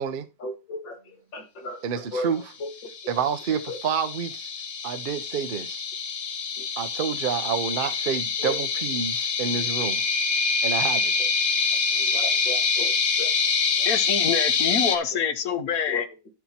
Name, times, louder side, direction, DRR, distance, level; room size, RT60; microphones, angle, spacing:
voice 1, 0.4-2.3 2.6-2.7 3.1-3.2 3.7-3.8 6.6-6.7 8.4-8.6 11.9-13.3 13.8-13.9 15.1-15.2 15.9-16.0, left 2 dB, 85° left, 2.9 m, -35 dB
voice 2, 1.8-2.4 3.1-4.5 4.8-5.8 6.8-10.0 10.6-11.1, right 7 dB, 55° right, 0.5 m, -28 dB
sound 1, 2.8-15.0, left 5 dB, 40° left, 1.0 m, -26 dB
voice 3, 13.8-16.0, left 7 dB, 60° left, 1.2 m, -26 dB
11.5 x 5.9 x 4.2 m
omnidirectional pair, 1.9 m